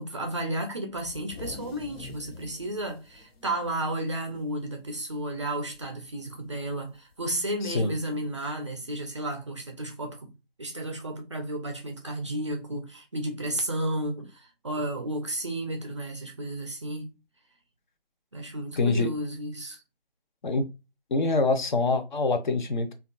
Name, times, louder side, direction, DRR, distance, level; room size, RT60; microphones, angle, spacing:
voice 1, 0.0-10.3 10.6-17.1 18.3-19.8, right 1 dB, 30° right, 0.4 m, -33 dB
sound 1, 0.9-4.7 5.0-5.2 5.5-6.0 7.1-7.2 8.2-8.3, left 3 dB, 85° left, 1.1 m, -45 dB
voice 2, 7.6-7.9 18.8-19.1 20.4-20.6 21.1-22.9, left 3 dB, 50° left, 0.5 m, -25 dB
2.7 x 2.3 x 2.4 m
figure-of-eight pair, 150°, 30 cm